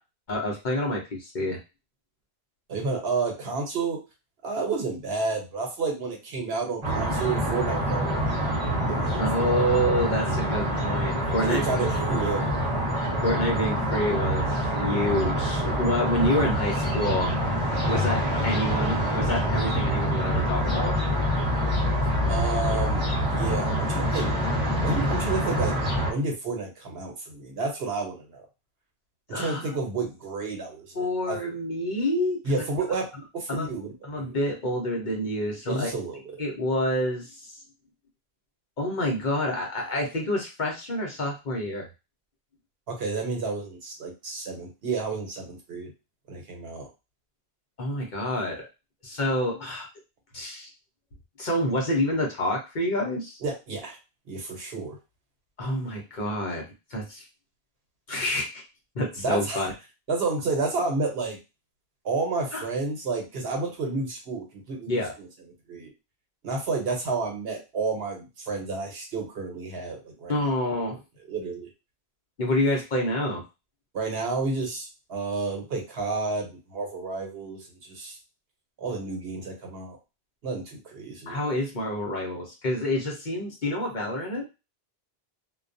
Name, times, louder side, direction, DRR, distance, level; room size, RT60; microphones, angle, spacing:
voice 1, 0.3-1.6 9.2-11.6 13.2-17.3 17.9-21.0 29.3-29.6 31.0-32.4 33.5-33.7 34.0-35.9 36.4-37.6 38.8-41.9 47.8-48.6 49.0-49.9 50.3-50.7 51.4-53.4 55.6-57.2 58.1-58.6 58.9-59.7 62.5-62.6 64.9-65.1 70.3-71.0 72.4-73.4 81.3-84.4, left 1 dB, 50° left, -1 dB, 0.8 m, -28 dB
voice 2, 2.7-4.0 4.4-8.2 8.9-9.5 11.4-12.5 22.3-24.3 24.8-25.8 26.0-28.4 29.3-31.4 32.4-34.3 35.7-36.2 42.9-45.9 46.3-46.9 53.4-54.0 54.3-55.0 59.2-59.6 60.1-61.4 62.0-65.3 65.7-65.9 66.4-70.5 71.2-71.7 73.9-78.2 78.8-80.0 80.4-81.4, right 3 dB, 70° right, 1 dB, 1.0 m, -31 dB
sound 1, 6.8-26.1, equal, 35° right, 0.9 m, -26 dB
2.3 x 2.2 x 2.5 m, 0.27 s
omnidirectional pair, 1.1 m